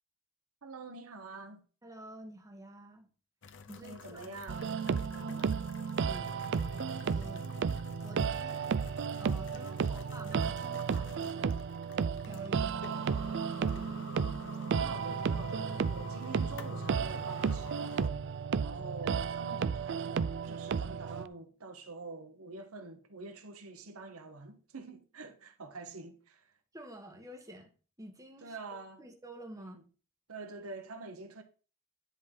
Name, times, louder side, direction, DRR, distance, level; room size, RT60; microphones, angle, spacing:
voice 1, 0.6-1.6 3.8-4.8 5.1-5.6 9.5-9.9 12.5-13.1 14.7-18.2 18.6-26.5 28.4-29.0 29.6-29.8 30.3-31.4, right 3 dB, 85° right, 1.2 m, -46 dB
voice 2, 1.8-3.1 3.7-4.3 5.2-5.6 6.0-7.5 8.0-8.8 9.2-11.6 12.2-12.7 13.1-13.3 13.6-13.9 26.7-27.7 28.0-28.6 29.0-29.8, right 1 dB, 15° right, 1.5 m, -49 dB
sound 1, 3.4-18.1, left 4 dB, 60° left, 0.9 m, -50 dB
sound 2, 4.5-21.3, right 6 dB, 55° right, 0.4 m, -33 dB
10.5 x 3.8 x 6.1 m
head